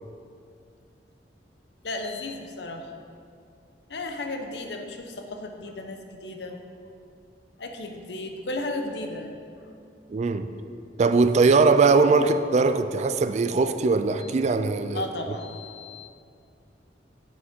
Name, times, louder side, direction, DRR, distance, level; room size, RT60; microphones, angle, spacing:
voice 1, 1.8-2.9 3.9-6.6 7.6-9.3 9.6-9.7 14.2-14.3 14.9-16.1, left 2 dB, 75° left, 4 dB, 0.9 m, -34 dB
voice 2, 10.1-10.5 11.0-15.0, right 4 dB, 40° right, 10 dB, 0.3 m, -20 dB
8.6 x 7.4 x 4.5 m, 2.4 s
head